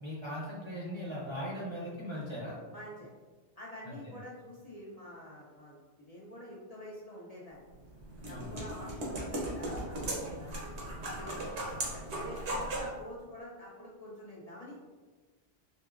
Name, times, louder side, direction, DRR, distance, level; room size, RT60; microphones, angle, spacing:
voice 1, 0.0-2.6 3.8-4.1 8.3-8.6, equal, 35° right, -5 dB, 0.5 m, -39 dB
voice 2, 2.7-3.1 3.6-7.8 8.3-10.8 11.2-11.6 12.2-14.8, left 1 dB, 50° left, -5 dB, 0.5 m, -47 dB
sound 1, 7.7-12.9, right 1 dB, 90° right, 1.0 m, -37 dB
3.5 x 2.7 x 2.4 m, 1.3 s
omnidirectional pair, 1.1 m